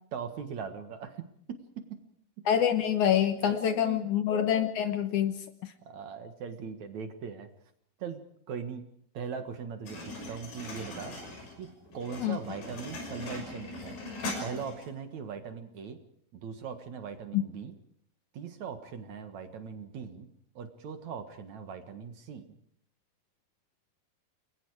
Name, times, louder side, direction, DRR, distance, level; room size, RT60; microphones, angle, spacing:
voice 1, 0.1-2.0 3.4-4.1 5.9-7.5 8.0-8.2 8.5-8.9 9.1-11.2 11.6-14.0 14.4-16.0 16.3-17.7 18.3-20.3 20.6-22.5, right 6 dB, 55° right, 8 dB, 2.6 m, -40 dB
voice 2, 2.5-5.4 12.2-12.4 17.3-17.4, left 9 dB, 65° left, 10 dB, 2.3 m, -26 dB
sound 1, 9.9-14.9, left 2 dB, 80° left, 8.1 m, -40 dB
29.0 x 22.5 x 4.8 m, 0.65 s
omnidirectional pair, 4.3 m